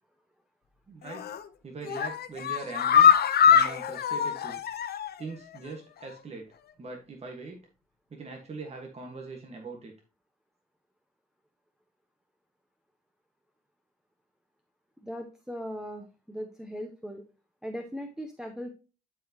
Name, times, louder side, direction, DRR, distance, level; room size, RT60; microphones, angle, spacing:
voice 1, 0.9-1.3 1.6-3.1 3.5-4.6 5.2-6.5 6.8-7.6 8.1-9.9, right 3 dB, 40° right, 1 dB, 1.5 m, -41 dB
sound 1, 1.1-1.4 1.8-5.2 5.5-5.6 6.0-6.1, left 8 dB, 75° left, 0.8 m, -23 dB
voice 2, 15.0-17.2 17.6-18.7, equal, 5° right, 4 dB, 1.0 m, -38 dB
11.5 x 4.7 x 2.9 m, 0.33 s
cardioid pair, 100°, 16 cm